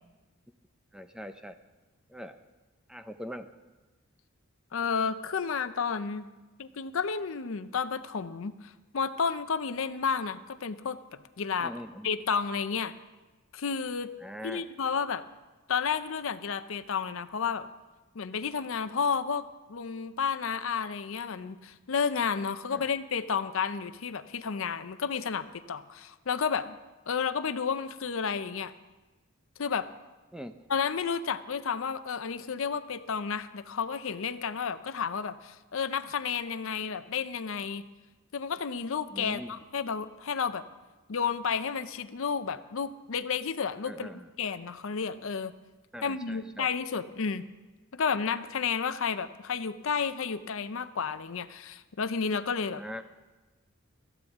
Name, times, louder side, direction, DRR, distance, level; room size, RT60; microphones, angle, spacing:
voice 1, 0.9-1.6 2.1-2.4 2.9-3.5 11.6-12.1 14.2-14.7 22.7-22.9 30.3-30.5 39.1-39.5 43.9-44.3 45.9-46.7 52.8-53.0, equal, 5° right, 8 dB, 0.5 m, -41 dB
voice 2, 4.7-6.3 6.6-11.7 12.0-12.9 13.5-14.1 14.4-15.2 15.7-17.7 18.2-19.4 19.7-26.8 27.1-28.7 29.6-29.9 30.7-37.8 38.3-40.6 41.1-44.1 44.4-45.5 46.0-47.5 47.9-52.8, left 6 dB, 70° left, 12 dB, 0.6 m, -31 dB
16.5 x 14.0 x 3.6 m, 1.2 s
head